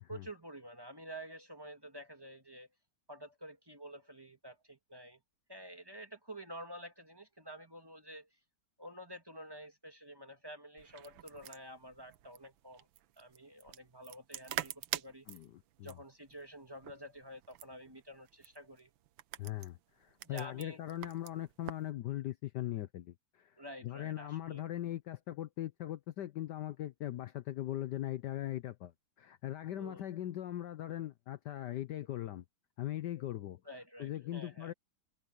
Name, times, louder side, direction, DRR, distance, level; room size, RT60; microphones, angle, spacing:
voice 1, 0.1-2.7 3.1-5.2 5.5-8.3 8.8-12.9 13.2-15.3 15.8-18.9 20.2-20.8 23.6-24.6 29.8-30.0 33.7-34.7, equal, 10° right, 1.9 m, -49 dB
sound 1, 10.8-21.9, right 13 dB, 80° right, 1.5 m, -46 dB
voice 2, 15.3-15.9 19.4-23.6 23.8-28.9 29.2-32.4 32.8-33.6 34.0-34.7, left 13 dB, 65° left, 1.2 m, -40 dB
omnidirectional pair, 2.2 m